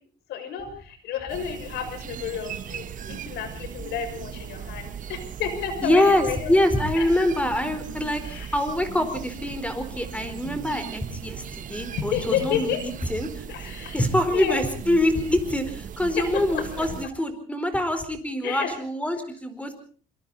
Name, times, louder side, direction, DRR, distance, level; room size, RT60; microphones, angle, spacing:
voice 1, 0.3-6.5 7.0-7.1 8.2-8.5 11.9-12.8 13.5-14.0 14.3-14.6 16.5-16.9 18.4-18.7, left 8 dB, 80° left, 9 dB, 6.5 m, -31 dB
sound 1, 1.3-17.1, right 8 dB, 50° right, 1.4 m, -38 dB
voice 2, 5.8-12.7 13.1-13.4 13.8-19.7, left 1 dB, 10° left, 10 dB, 4.5 m, -25 dB
27.0 x 23.0 x 4.2 m, 0.44 s
cardioid pair, 110°, 17 cm